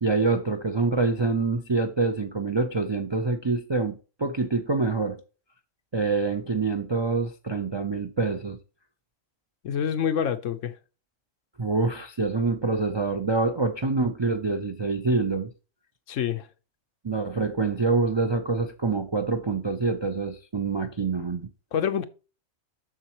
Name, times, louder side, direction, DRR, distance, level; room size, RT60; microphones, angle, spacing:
voice 1, 0.0-5.2 5.9-8.6 11.6-15.5 17.0-21.5, right 3 dB, 40° right, 0.4 m, -26 dB
voice 2, 9.6-10.7 16.1-16.5 21.7-22.1, left 8 dB, 70° left, 1.1 m, -26 dB
7.4 x 6.6 x 3.0 m
omnidirectional pair, 1.4 m